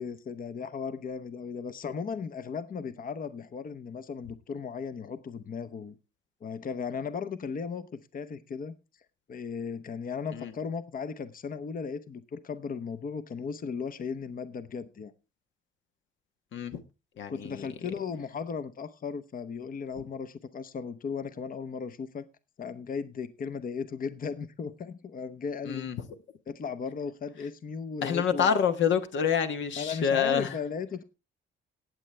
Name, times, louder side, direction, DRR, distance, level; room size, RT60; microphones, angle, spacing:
voice 1, 0.0-6.0 6.4-8.7 9.3-15.1 17.3-22.2 22.6-25.9 26.5-28.6 29.8-31.0, left 5 dB, 45° left, 1.0 m, -36 dB
voice 2, 17.2-17.7 25.7-26.0 28.0-30.5, left 7 dB, 70° left, 1.3 m, -27 dB
18.5 x 7.7 x 3.3 m
cardioid pair, 90°, 20 cm